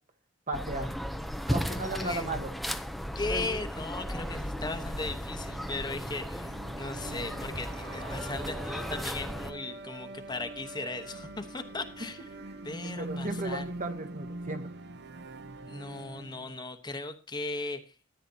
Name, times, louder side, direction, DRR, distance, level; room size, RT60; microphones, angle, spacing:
sound 1, 0.5-9.5, equal, ahead, 0.6 m, -35 dB
voice 1, 0.5-0.9 1.5-2.5 12.4-14.7, right 2 dB, 40° right, 6 dB, 1.3 m, -36 dB
voice 2, 1.4-2.3 3.1-6.5 6.8-12.3 12.6-13.7 15.7-17.8, left 3 dB, 20° left, 7 dB, 1.1 m, -37 dB
sound 2, 3.8-16.6, right 2 dB, 55° right, 1.0 m, -43 dB
14.0 x 9.3 x 2.8 m, 0.34 s
head